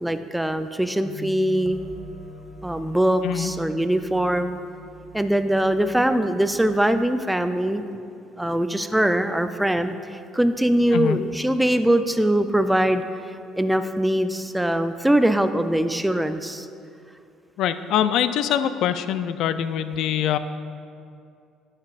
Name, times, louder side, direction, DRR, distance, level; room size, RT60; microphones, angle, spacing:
voice 1, 0.0-1.8 2.6-4.6 5.1-7.8 8.4-13.0 13.6-16.7, right 1 dB, 5° right, 9 dB, 0.4 m, -22 dB
sound 1, 1.0-6.7, equal, 25° left, 1.1 m, -43 dB
voice 2, 17.6-20.4, left 9 dB, 70° left, 12 dB, 0.3 m, -23 dB
10.5 x 5.7 x 2.5 m, 2.4 s
supercardioid pair, 90°, 0 cm